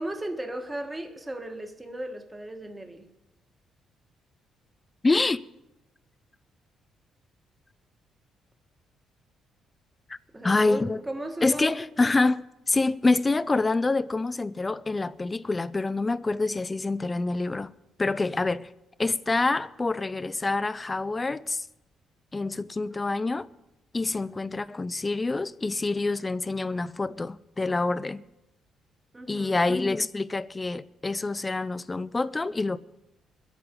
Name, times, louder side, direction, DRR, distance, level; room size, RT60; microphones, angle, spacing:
voice 1, 0.0-3.1 10.3-11.7 29.1-29.6, right 1 dB, 10° right, 1.3 m, -36 dB
voice 2, 5.0-5.4 10.1-10.2 10.4-11.0 11.4-17.7 18.0-18.7 19.0-21.6 22.3-23.5 23.9-28.2 29.3-32.8, left 3 dB, 20° left, 0.4 m, -26 dB
23.0 x 8.0 x 5.2 m
cardioid pair, 135°, 0 cm